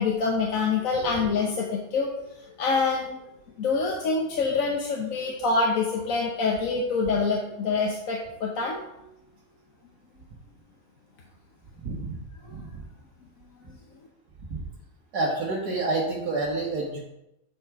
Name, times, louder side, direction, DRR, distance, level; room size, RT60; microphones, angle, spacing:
voice 1, 0.0-2.1 2.6-3.1 3.6-8.9, left 4 dB, 60° left, -1 dB, 1.3 m, -26 dB
voice 2, 11.8-12.2 12.5-12.6 14.5-14.6 15.1-17.1, right 2 dB, 85° right, -5 dB, 1.8 m, -28 dB
9.2 x 4.7 x 4.6 m, 0.86 s
omnidirectional pair, 1.7 m